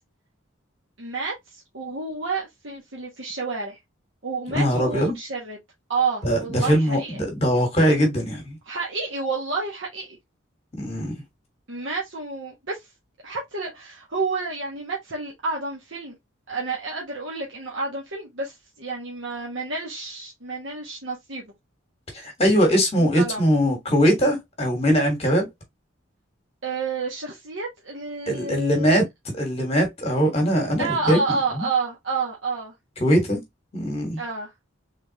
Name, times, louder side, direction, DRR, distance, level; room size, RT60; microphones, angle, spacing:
voice 1, 1.0-3.8 4.2-5.6 5.9-7.2 8.7-10.2 11.7-12.8 13.2-16.1 16.5-21.5 23.0-23.5 26.6-29.0 30.8-32.7 34.2-34.5, right 4 dB, 70° right, 1.1 m, -30 dB
voice 2, 4.5-5.2 6.2-8.6 10.8-11.2 22.1-25.5 28.3-29.1 29.3-31.2 31.5-31.7 33.0-33.4 33.7-34.2, equal, 30° left, 1.2 m, -21 dB
3.5 x 3.4 x 2.7 m
head